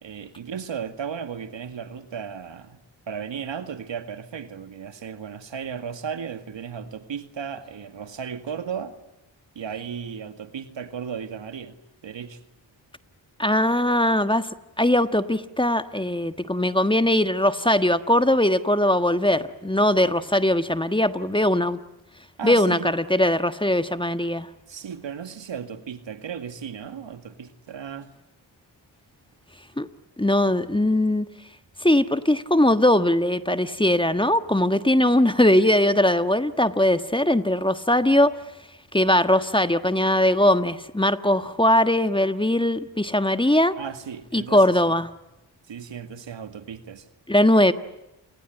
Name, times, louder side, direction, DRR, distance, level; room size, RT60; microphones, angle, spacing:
voice 1, 0.0-2.8 3.1-9.0 9.6-11.8 12.0-12.4 22.4-22.9 24.7-28.1 43.8-44.9 45.7-47.1, right 7 dB, 75° right, 2.1 m, -35 dB
voice 2, 13.4-14.5 14.8-21.8 22.4-24.5 29.8-29.9 30.2-31.3 31.8-38.4 38.9-43.7 44.3-45.1 47.3-47.7, left 1 dB, 10° left, 1.4 m, -20 dB
28.5 x 21.5 x 9.1 m
cardioid pair, 55°, 45 cm